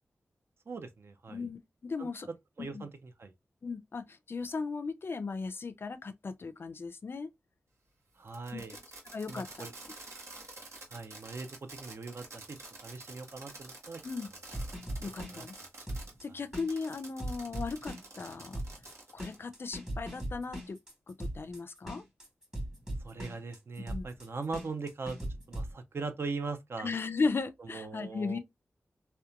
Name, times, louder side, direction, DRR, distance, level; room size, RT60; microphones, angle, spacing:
voice 1, 0.7-1.4 2.0-2.1 2.6-3.3 8.2-8.7 9.3-9.7 10.9-12.6 12.8-14.0 15.3-15.5 15.9-16.0 23.0-25.2 25.5-26.9 27.6-28.4, right 4 dB, 55° right, 0.5 m, -40 dB
voice 2, 1.3-2.3 2.6-2.9 3.6-7.3 8.5-8.6 9.1-9.7 14.0-14.3 15.0-15.5 16.2-18.6 19.1-20.8 21.1-22.0 23.9-24.1 26.8-28.4, left 4 dB, 50° left, 0.4 m, -36 dB
Fireworks, 8.3-16.1 16.5-19.4, right 2 dB, 70° right, 0.9 m, -49 dB
sound 1, 14.4-25.7, right 1 dB, 15° right, 1.4 m, -39 dB
2.8 x 2.1 x 2.3 m
wide cardioid pair, 85°, 5 cm